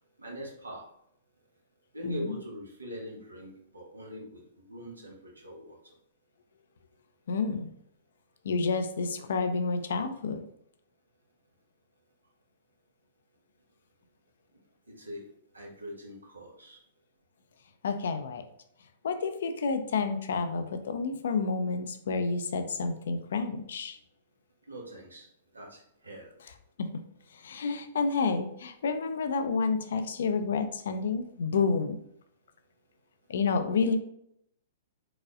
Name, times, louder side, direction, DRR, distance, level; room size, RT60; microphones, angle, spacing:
voice 1, 0.2-0.8 1.9-5.8 14.9-15.2 15.5-16.8 24.7-25.3 25.5-26.3, equal, 80° right, -1 dB, 1.3 m, -42 dB
voice 2, 2.0-2.4 7.3-7.7 8.4-10.4 17.8-18.4 19.0-24.0 26.8-26.9 27.3-32.0 33.3-34.0, left 4 dB, 60° left, 8 dB, 0.5 m, -29 dB
4.9 x 4.0 x 2.4 m, 0.73 s
figure-of-eight pair, 110°, 0 cm